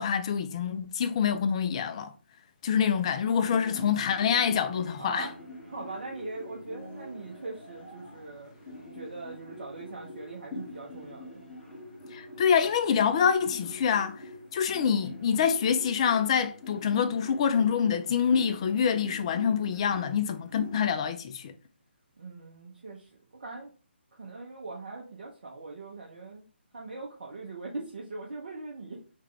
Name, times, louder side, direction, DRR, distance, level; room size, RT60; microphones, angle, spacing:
voice 1, 0.0-2.1 2.6-5.3 12.1-14.2 14.5-21.5, left 7 dB, 30° left, 0.4 m, -26 dB
sound 1, 3.0-20.9, left 1 dB, 5° left, 1.8 m, -45 dB
voice 2, 5.0-5.3 5.7-8.5 8.9-11.4 22.2-23.7 24.1-26.4 26.7-29.0, right 3 dB, 55° right, 0.9 m, -41 dB
3.3 x 3.2 x 3.3 m
figure-of-eight pair, 145°, 6 cm